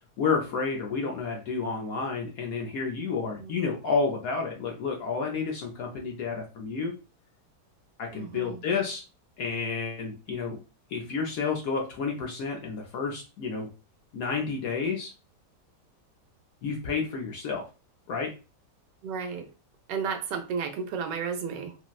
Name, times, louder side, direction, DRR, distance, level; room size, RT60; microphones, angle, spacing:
voice 1, 0.2-6.9 8.0-9.0 9.4-10.6 10.9-13.7 14.1-15.1 16.6-17.7 18.1-18.3, left 5 dB, 70° left, 1 dB, 0.9 m, -30 dB
voice 2, 8.1-8.6 19.0-19.5 19.9-21.8, right 6 dB, 80° right, 7 dB, 1.2 m, -33 dB
4.2 x 2.0 x 2.3 m, 0.32 s
omnidirectional pair, 1.9 m